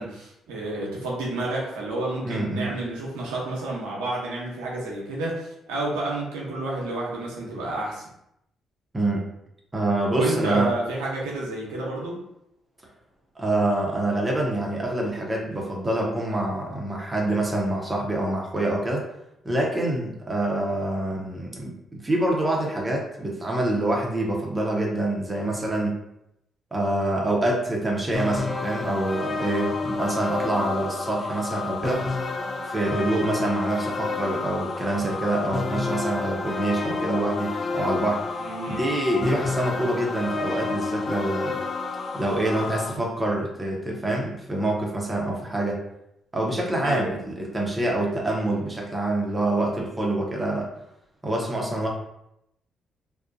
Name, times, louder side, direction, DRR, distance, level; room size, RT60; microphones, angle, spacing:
voice 1, 0.0-8.1 10.1-12.2 38.4-38.8 46.8-47.1, right 2 dB, 90° right, -4 dB, 0.7 m, -30 dB
voice 2, 2.2-2.7 8.9-9.2 9.7-10.7 13.4-19.0 19.4-21.7 22.0-26.0 26.7-32.0 32.6-38.2 38.7-41.5 42.1-45.8 46.3-50.7 51.2-51.9, right 1 dB, 25° right, -1 dB, 0.7 m, -26 dB
sound 1, 28.1-42.9, left 3 dB, 40° left, 0.3 m, -30 dB
2.4 x 2.2 x 2.5 m, 0.79 s
supercardioid pair, 55°, 0 cm